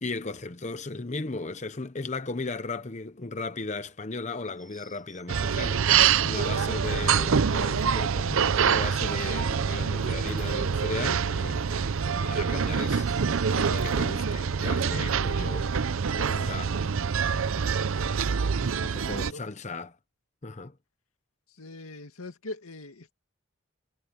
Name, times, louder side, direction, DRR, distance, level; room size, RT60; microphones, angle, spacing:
voice 1, 0.0-11.6 12.0-15.9 16.2-16.8 18.8-20.0 20.4-20.7, left 3 dB, 35° left, 0.8 m, -36 dB
sound 1, 4.3-14.8, equal, ahead, 3.5 m, -55 dB
sound 2, 5.3-19.3, right 6 dB, 70° right, 0.6 m, -26 dB
sound 3, 7.2-18.1, equal, 40° right, 6.1 m, -45 dB
voice 2, 21.6-23.1, left 2 dB, 90° left, 2.1 m, -41 dB
head